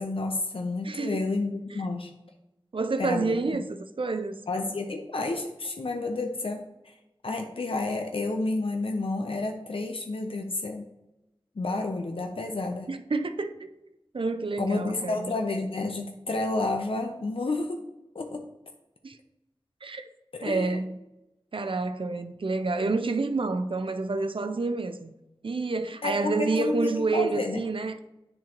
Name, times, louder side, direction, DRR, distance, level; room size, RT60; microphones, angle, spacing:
voice 1, 0.0-2.1 3.0-3.4 4.5-6.9 7.2-10.9 11.6-12.9 14.6-17.8 18.1-18.4 20.3-20.7 26.0-27.6, left 2 dB, 80° left, 0.6 m, -30 dB
voice 2, 0.8-1.2 1.7-1.8 2.7-4.3 12.9-13.7 14.1-15.3 19.0-19.2 19.8-20.1 20.4-21.0 21.5-25.1 25.4-28.0, right 3 dB, 70° right, 0.5 m, -29 dB
10.0 x 3.7 x 2.9 m
wide cardioid pair, 55°, 9 cm